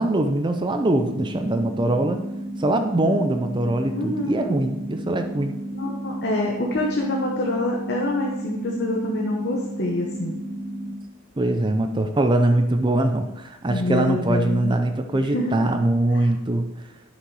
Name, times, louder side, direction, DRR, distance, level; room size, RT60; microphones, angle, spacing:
voice 1, 0.0-2.2 2.6-5.6 11.4-16.7, right 1 dB, 20° right, 6 dB, 0.5 m, -22 dB
sound 1, 0.9-10.9, right 1 dB, 5° left, 2.0 m, -33 dB
voice 2, 3.9-4.6 5.7-10.4 13.7-14.8 15.1-15.5 16.1-16.2, left 1 dB, 50° left, -1 dB, 1.1 m, -26 dB
9.6 x 6.5 x 4.8 m, 0.96 s
head